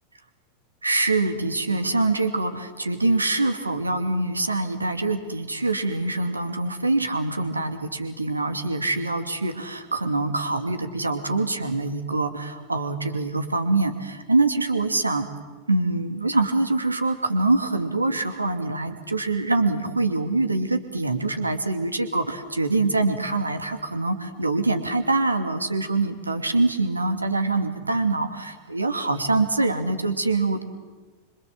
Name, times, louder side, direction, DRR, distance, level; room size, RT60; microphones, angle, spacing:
voice 1, 0.8-15.3 15.7-30.6, right 2 dB, 80° right, 7 dB, 2.6 m, -24 dB
27.0 x 26.0 x 7.7 m, 1.3 s
figure-of-eight pair, 90°, 0 cm